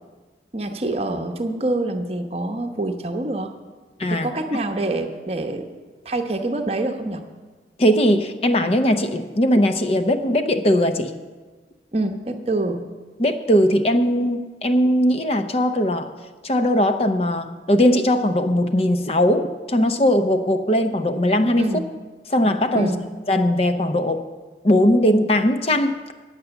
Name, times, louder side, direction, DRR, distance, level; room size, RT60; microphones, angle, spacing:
voice 1, 0.5-3.5 4.1-5.7 6.0-7.2 11.9-12.8 21.6-21.8 22.7-23.0, right 2 dB, 35° right, 5 dB, 0.9 m, -25 dB
voice 2, 4.0-4.3 7.8-11.1 13.2-16.1 16.4-21.7 22.3-22.9 23.3-24.2 24.6-26.0, equal, 35° left, 8 dB, 0.6 m, -19 dB
10.0 x 8.2 x 7.0 m, 1.4 s
head